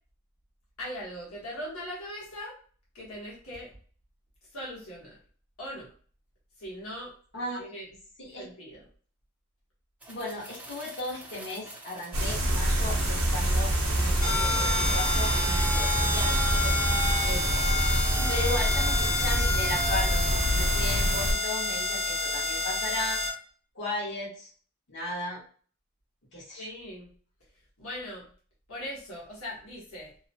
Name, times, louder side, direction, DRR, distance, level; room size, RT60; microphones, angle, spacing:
voice 1, 0.8-2.6 2.9-3.7 4.5-5.2 5.6-5.9 6.6-7.2 7.6-7.9 8.4-8.8 26.6-27.1 27.8-28.3 28.7-30.1, equal, 85° left, -5 dB, 1.1 m, -40 dB
voice 2, 7.3-7.7 8.2-8.4 10.1-13.7 14.0-16.8 17.2-17.7 18.2-23.2 23.7-24.5 24.9-25.4 26.3-26.6, left 2 dB, 55° left, -7 dB, 1.2 m, -36 dB
sound 1, 10.0-18.4, right 1 dB, 5° right, 0.5 m, -45 dB
sound 2, 12.1-21.3, equal, 75° right, 0.8 m, -26 dB
sound 3, 14.2-23.3, left 2 dB, 35° left, 1.0 m, -29 dB
2.9 x 2.1 x 2.7 m, 0.43 s
head